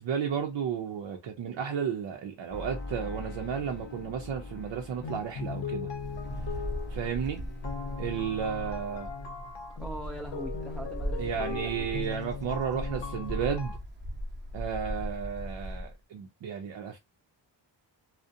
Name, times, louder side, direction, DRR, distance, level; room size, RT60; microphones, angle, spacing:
voice 1, 0.0-5.9 6.9-7.4 8.0-9.1 11.2-13.7 14.5-17.0, right 7 dB, 80° right, 0.6 m, -33 dB
sound 1, 2.5-10.0 10.2-10.9 11.2-11.3, left 2 dB, 25° left, 0.7 m, -45 dB
sound 2, 5.0-7.2 7.6-13.8, left 5 dB, 75° left, 0.7 m, -39 dB
Wind, 5.9-15.9, equal, 25° right, 0.7 m, -38 dB
voice 2, 9.8-11.9, equal, ahead, 0.3 m, -41 dB
2.4 x 2.1 x 2.6 m
cardioid pair, 90°, 43 cm